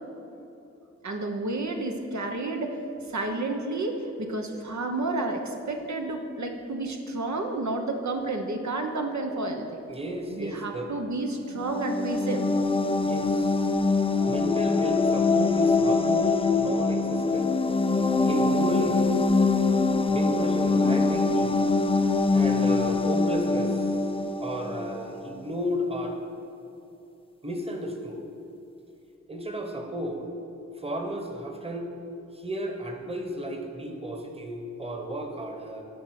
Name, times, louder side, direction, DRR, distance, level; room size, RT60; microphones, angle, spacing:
voice 1, 1.0-2.8 3.1-9.8 10.3-12.4, right 2 dB, 75° right, 3 dB, 1.0 m, -31 dB
voice 2, 9.9-10.9 13.0-13.7 14.2-17.5 18.2-19.2 20.1-21.7 22.3-23.8 24.4-26.2 27.4-28.2 29.3-30.3 30.8-31.9 32.3-35.8, equal, 20° right, 3 dB, 1.3 m, -33 dB
sound 1, 11.5-25.1, left 3 dB, 20° left, 0.4 m, -24 dB
13.0 x 5.5 x 6.5 m, 2.9 s
wide cardioid pair, 95°, 29 cm